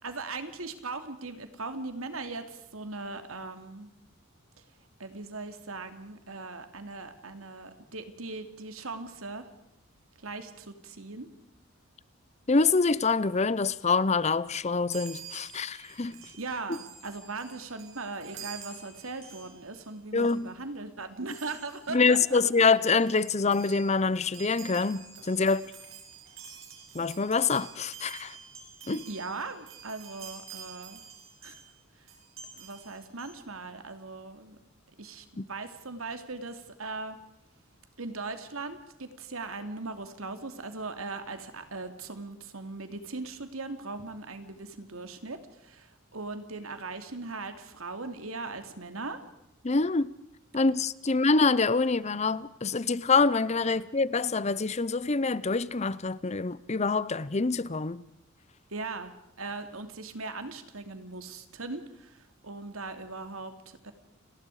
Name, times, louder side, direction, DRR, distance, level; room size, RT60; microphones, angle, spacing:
voice 1, 0.0-3.9 5.0-9.5 10.2-11.3 16.4-22.4 29.1-31.0 31.4-31.5 32.0-32.1 32.5-34.6 35.0-37.2 38.0-49.2 58.7-63.9, right 3 dB, 90° right, 2.7 m, -39 dB
voice 2, 12.5-16.2 20.1-20.5 21.9-25.6 26.9-28.4 28.9-29.1 35.4-35.5 49.6-50.1 50.5-58.0, left 4 dB, 30° left, 0.7 m, -26 dB
Chime, 14.9-19.9 20.2-20.4 21.3-21.9 22.5-22.6 22.7-31.7 32.1-33.3, right 7 dB, 70° right, 5.6 m, -48 dB
29.5 x 19.5 x 4.9 m
head